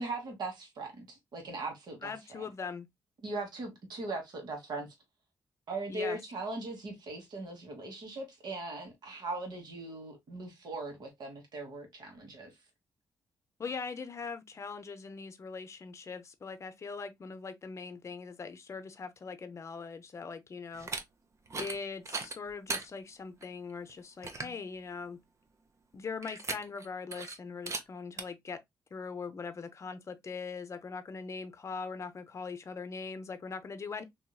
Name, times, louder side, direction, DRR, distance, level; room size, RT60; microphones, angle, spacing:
voice 1, 0.0-2.5 3.2-4.9 5.7-12.5, right 2 dB, 70° right, 1.3 m, -39 dB
voice 2, 2.0-2.9 5.9-6.2 13.6-20.9 21.5-25.2 25.9-28.6 28.9-34.0, left 5 dB, 40° left, 0.6 m, -41 dB
sound 1, 20.7-21.0 21.5-21.8 22.1-22.9 23.4-23.5 23.9-24.0 24.2-24.6 26.2-26.9 27.1-27.4 27.7-27.8 28.2-28.3, right 4 dB, 40° right, 0.6 m, -37 dB
2.9 x 2.7 x 2.2 m
cardioid pair, 75°, 8 cm